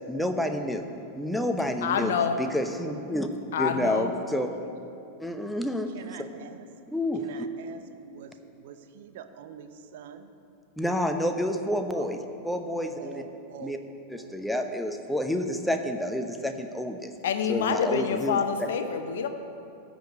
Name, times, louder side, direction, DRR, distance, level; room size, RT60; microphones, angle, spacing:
voice 1, 0.1-0.8 1.2-2.1 2.4-3.3 3.6-4.5 5.2-5.9 6.9-7.5 10.8-12.2 12.4-13.2 13.6-13.8 14.1-17.1 17.5-18.7, left 1 dB, 5° left, 6 dB, 0.9 m, -29 dB
voice 2, 1.8-2.5 3.5-4.1 17.2-19.3, left 6 dB, 60° left, 8 dB, 0.9 m, -27 dB
voice 3, 5.9-6.7 7.2-10.3 11.9-12.1 12.7-14.4, right 8 dB, 55° right, 9 dB, 0.7 m, -46 dB
13.5 x 5.1 x 8.4 m, 2.6 s
figure-of-eight pair, 90°, 0 cm